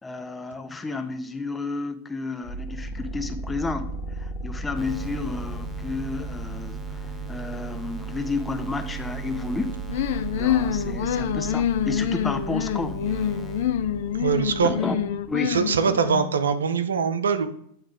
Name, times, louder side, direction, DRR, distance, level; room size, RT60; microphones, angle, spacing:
voice 1, 0.0-3.9 4.2-13.0 14.6-15.0 15.3-15.6, left 3 dB, 15° left, 8 dB, 0.7 m, -31 dB
sound 1, 2.4-15.1, right 2 dB, 45° left, 1.0 m, -36 dB
sound 2, 4.7-14.6, right 9 dB, 5° right, 1.0 m, -39 dB
sound 3, 9.9-16.3, left 10 dB, 65° left, 0.4 m, -26 dB
voice 2, 14.2-14.7 15.4-17.5, right 6 dB, 80° right, 10 dB, 0.6 m, -23 dB
9.1 x 3.2 x 4.3 m, 0.68 s
hypercardioid pair, 95°, 0 cm